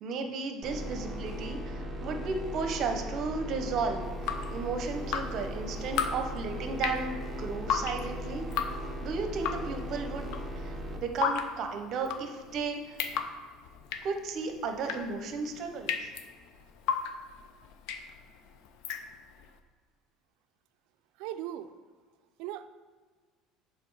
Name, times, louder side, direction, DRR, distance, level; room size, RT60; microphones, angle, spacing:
voice 1, 0.0-8.4 9.0-10.3 10.6-13.0 14.0-16.1, right 4 dB, 45° right, 5 dB, 0.8 m, -34 dB
sound 1, 0.6-11.0, equal, 5° right, 0.9 m, -38 dB
Drip, 4.0-19.5, left 7 dB, 65° left, 0.5 m, -36 dB
voice 2, 21.2-21.7 22.4-22.7, right 12 dB, 75° right, 11 dB, 0.4 m, -38 dB
7.5 x 3.6 x 4.7 m, 1.5 s
cardioid pair, 155°, 0 cm